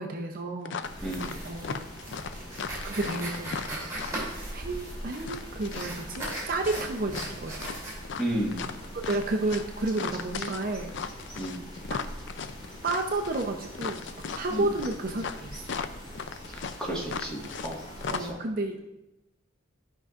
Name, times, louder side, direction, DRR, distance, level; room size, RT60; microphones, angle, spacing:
voice 1, 0.0-1.9 2.8-3.7 4.5-7.5 8.9-10.9 11.2-11.3 11.9-12.0 12.8-14.0 14.4-15.8 18.1-19.0, right 2 dB, 45° right, 2 dB, 0.6 m, -31 dB
sound 1, 0.6-1.4 1.6-4.3 5.2-7.3 7.6-17.7 18.0-18.2, left 5 dB, 60° left, 0.4 m, -37 dB
sound 2, 0.8-18.3, equal, 35° left, 3.0 m, -43 dB
voice 2, 1.0-1.4 8.2-8.8 11.4-11.7 14.5-14.7 16.8-18.4, right 1 dB, 5° left, -5 dB, 1.6 m, -33 dB
sound 3, 1.0-8.0, right 1 dB, 15° right, 3.1 m, -39 dB
13.5 x 5.5 x 2.5 m, 0.93 s
head